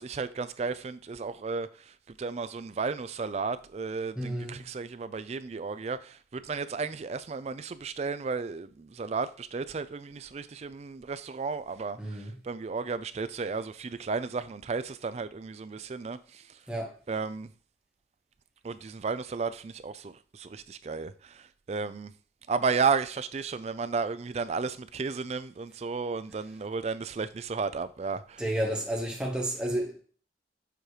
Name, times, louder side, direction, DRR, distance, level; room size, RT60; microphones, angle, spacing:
voice 1, 0.0-16.6 17.1-17.5 18.6-22.1 22.5-28.4, right 4 dB, 35° right, 0.3 m, -33 dB
voice 2, 4.1-4.6 12.0-12.3 16.7-17.0 28.4-30.0, right 1 dB, 5° right, 1.2 m, -31 dB
7.0 x 3.0 x 4.8 m
head